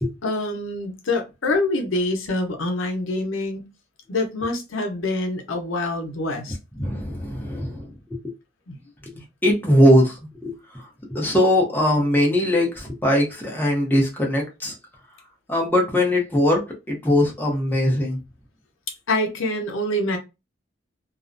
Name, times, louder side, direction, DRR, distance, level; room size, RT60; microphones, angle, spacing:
voice 1, 0.2-3.7 4.1-6.6 8.7-8.8 19.1-20.2, left 2 dB, 90° left, 0.7 m, -25 dB
voice 2, 6.8-7.9 9.4-10.8 11.1-14.7 15.5-18.2, left 1 dB, 10° left, 0.6 m, -20 dB
2.4 x 2.0 x 2.5 m
head